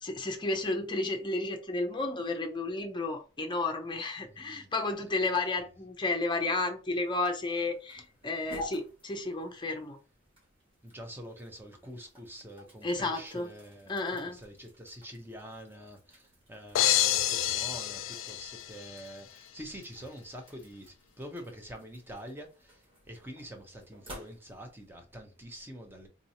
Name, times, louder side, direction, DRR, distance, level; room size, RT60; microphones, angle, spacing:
voice 1, 0.0-10.0 12.8-13.5 13.9-14.4, left 2 dB, 25° left, 0.7 m, -32 dB
voice 2, 4.3-4.7 10.8-13.9 14.3-16.2 16.5-22.5 23.1-26.1, equal, 10° right, 0.8 m, -46 dB
sound 1, 6.9-24.9, left 1 dB, 30° right, 1.8 m, -52 dB
sound 2, 16.7-19.0, left 12 dB, 85° left, 0.3 m, -28 dB
3.7 x 3.0 x 2.8 m
head